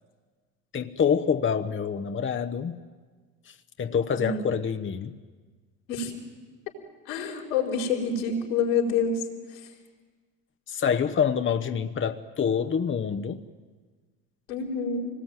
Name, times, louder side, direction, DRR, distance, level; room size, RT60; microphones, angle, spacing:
voice 1, 0.7-2.8 3.5-5.1 10.7-13.4, left 7 dB, 30° left, 8 dB, 1.1 m, -26 dB
voice 2, 7.1-9.1 14.5-15.1, left 5 dB, 90° left, 1 dB, 4.7 m, -27 dB
25.5 x 19.5 x 9.1 m, 1.5 s
hypercardioid pair, 75°, 39 cm